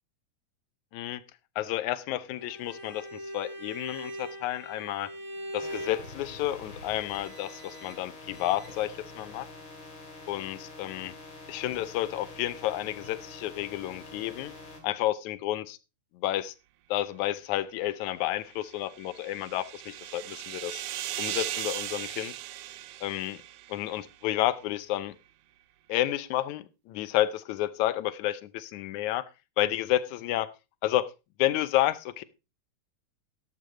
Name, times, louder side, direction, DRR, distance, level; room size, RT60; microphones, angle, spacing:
voice 1, 1.6-5.1 5.5-9.5 10.3-11.1 11.5-14.5 14.8-15.8 16.2-16.5 16.9-20.8 21.2-22.4 23.0-23.4 23.7-25.2 25.9-29.3 29.6-30.5 30.8-31.1 31.4-32.2, left 14 dB, 80° left, 15 dB, 2.1 m, -30 dB
Bowed string instrument, 2.4-6.1, equal, 5° right, 5.3 m, -40 dB
sound 1, 5.6-14.8, left 2 dB, 45° left, 3.5 m, -46 dB
sound 2, 18.5-24.1, right 13 dB, 75° right, 1.5 m, -38 dB
13.0 x 11.5 x 3.0 m, 0.28 s
omnidirectional pair, 3.4 m